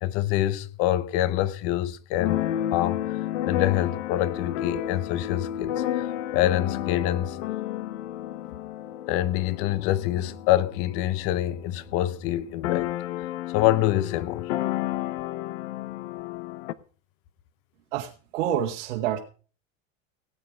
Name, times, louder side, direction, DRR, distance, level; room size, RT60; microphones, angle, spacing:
voice 1, 0.0-2.4 2.7-6.1 6.3-7.4 9.1-12.9 13.5-14.5, left 13 dB, 35° left, 0.8 m, -26 dB
Keyboard (musical), 2.2-11.7 12.0-12.1 12.3-16.7, left 13 dB, 70° left, 0.9 m, -31 dB
voice 2, 17.9-19.2, right 10 dB, 75° right, 1.6 m, -28 dB
18.0 x 8.7 x 5.0 m
supercardioid pair, 170°, 37 cm